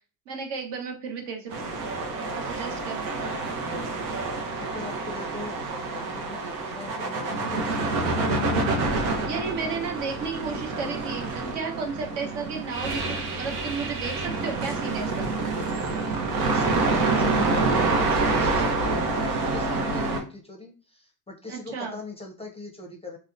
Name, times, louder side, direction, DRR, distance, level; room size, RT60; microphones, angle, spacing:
voice 1, 0.3-2.0 2.3-3.0 9.3-15.3 21.5-22.0, right 5 dB, 60° right, 3 dB, 1.0 m, -33 dB
sound 1, 1.5-20.2, right 3 dB, 85° right, 0.8 m, -27 dB
voice 2, 4.6-8.3 16.5-23.2, left 2 dB, 15° left, 1 dB, 0.5 m, -40 dB
2.8 x 2.1 x 2.4 m, 0.36 s
supercardioid pair, 80°, 46 cm